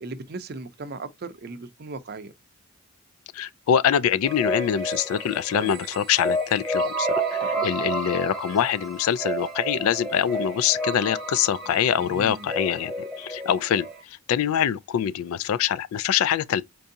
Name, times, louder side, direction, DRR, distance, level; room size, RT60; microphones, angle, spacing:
voice 1, 0.0-2.3 5.5-5.7 7.4-7.7 12.0-12.5, right 3 dB, 45° right, 0.5 m, -37 dB
voice 2, 3.3-16.6, left 9 dB, 80° left, 0.3 m, -24 dB
sound 1, 4.2-14.0, right 1 dB, ahead, 1.0 m, -30 dB
4.5 x 2.6 x 2.6 m
head